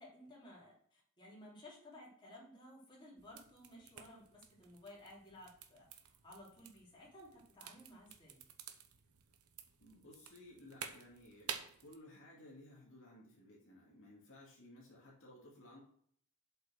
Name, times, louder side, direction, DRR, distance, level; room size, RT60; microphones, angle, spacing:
voice 1, 0.0-8.4, left 1 dB, 20° left, -6 dB, 3.5 m, -57 dB
sound 1, 3.2-11.9, right 8 dB, 80° right, 1.0 m, -52 dB
voice 2, 9.8-15.8, left 1 dB, 60° left, -4 dB, 2.4 m, -58 dB
7.7 x 5.5 x 6.4 m, 0.63 s
head